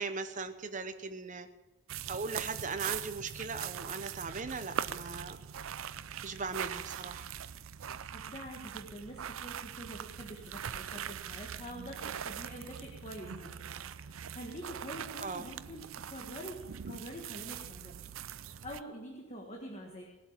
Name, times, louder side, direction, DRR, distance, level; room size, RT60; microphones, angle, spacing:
voice 1, 0.0-1.5 2.1-5.4 6.2-7.3 15.2-15.5, right 4 dB, 40° right, 9 dB, 1.0 m, -38 dB
sound 1, 1.9-18.8, right 8 dB, 75° right, 0.5 m, -42 dB
voice 2, 8.1-15.8 16.1-16.6 16.9-20.0, equal, 30° left, 0 dB, 1.7 m, -46 dB
19.0 x 8.0 x 7.3 m, 1.2 s
head